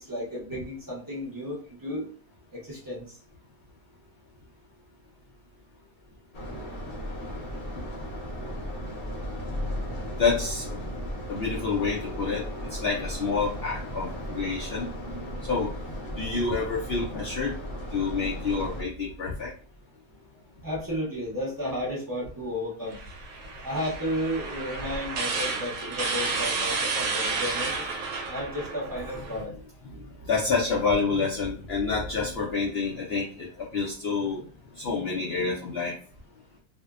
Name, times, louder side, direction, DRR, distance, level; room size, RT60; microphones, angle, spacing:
voice 1, 0.0-2.1 2.5-3.2 20.6-23.0 23.6-27.7 28.3-29.5, equal, 25° right, -5 dB, 0.5 m, -33 dB
sound 1, 6.3-18.8, equal, 45° left, 0.8 m, -36 dB
voice 2, 10.2-10.8 11.3-15.7 16.2-17.6 17.9-19.5 26.7-26.8 30.0-34.4 34.7-36.0, left 4 dB, 70° left, -3 dB, 0.5 m, -28 dB
sound 2, 22.9-29.4, right 4 dB, 70° right, 1.0 m, -31 dB
2.6 x 2.1 x 2.3 m, 0.42 s
omnidirectional pair, 1.6 m